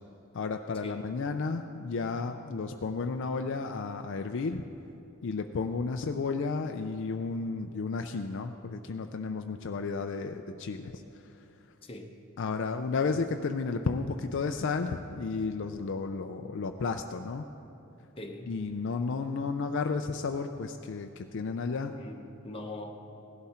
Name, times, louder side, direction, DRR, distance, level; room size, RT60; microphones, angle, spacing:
voice 1, 0.3-4.6 5.2-11.5 12.4-17.5 18.5-21.9, left 4 dB, 60° left, 6 dB, 0.4 m, -33 dB
voice 2, 18.2-18.5 21.8-23.2, left 1 dB, 25° left, 3 dB, 0.9 m, -42 dB
17.0 x 11.5 x 4.3 m, 2.8 s
head